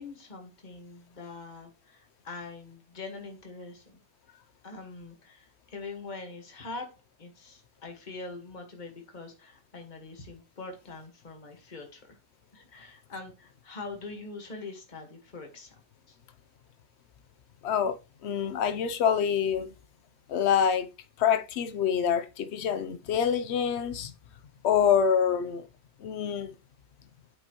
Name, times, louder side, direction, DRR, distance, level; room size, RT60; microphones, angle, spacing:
voice 1, 0.0-4.0 4.6-6.9 7.2-12.2 12.5-15.7 16.1-16.2, left 3 dB, 30° left, 1.6 m, -43 dB
voice 2, 17.6-18.0 18.2-19.7 20.3-20.9 21.2-24.1 24.6-25.7 26.0-26.5, left 8 dB, 55° left, 0.9 m, -26 dB
8.5 x 5.2 x 3.0 m
omnidirectional pair, 1.5 m